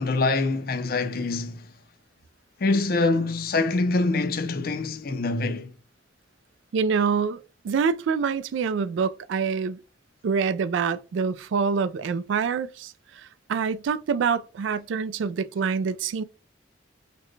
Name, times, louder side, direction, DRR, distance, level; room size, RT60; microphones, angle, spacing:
voice 1, 0.0-1.7 2.6-5.7, left 3 dB, 50° left, 0.5 m, -25 dB
voice 2, 6.7-9.8 10.2-16.2, right 5 dB, 80° right, 0.3 m, -26 dB
4.1 x 2.1 x 3.1 m
head